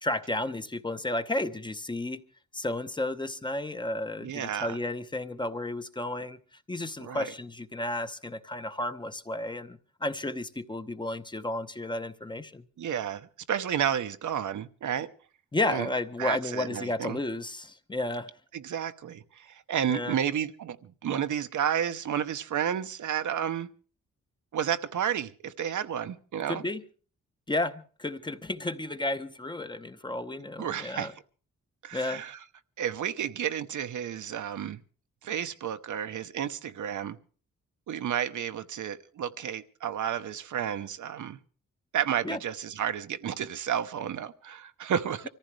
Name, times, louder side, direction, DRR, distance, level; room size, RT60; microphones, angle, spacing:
voice 1, 0.0-2.2 2.5-6.4 6.7-12.6 15.5-18.3 19.9-20.2 26.5-26.8 27.5-31.1 31.9-32.2 42.2-42.4, left 2 dB, 15° left, 0.8 m, -32 dB
voice 2, 4.2-4.8 7.0-7.3 12.8-15.1 15.7-15.9 16.2-17.2 18.5-23.7 24.5-26.6 30.6-31.1 31.8-32.4 32.8-34.8 35.2-37.2 37.9-41.4 41.9-45.3, right 9 dB, 80° right, 0.9 m, -31 dB
25.0 x 14.5 x 3.3 m
wide cardioid pair, 160°, 30 cm